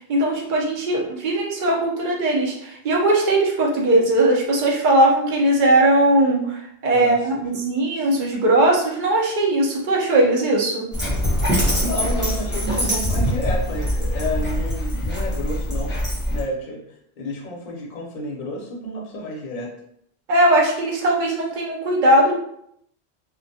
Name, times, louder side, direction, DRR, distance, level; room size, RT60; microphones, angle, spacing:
voice 1, 0.1-10.9 20.3-22.3, right 1 dB, 55° right, -2 dB, 0.7 m, -19 dB
voice 2, 6.9-7.4 11.7-15.9 16.3-16.8 17.2-19.7, left 1 dB, 50° left, -2 dB, 0.6 m, -30 dB
Dog, 10.9-16.4, equal, 15° right, 0.5 m, -23 dB
2.2 x 2.1 x 2.6 m, 0.72 s
omnidirectional pair, 1.1 m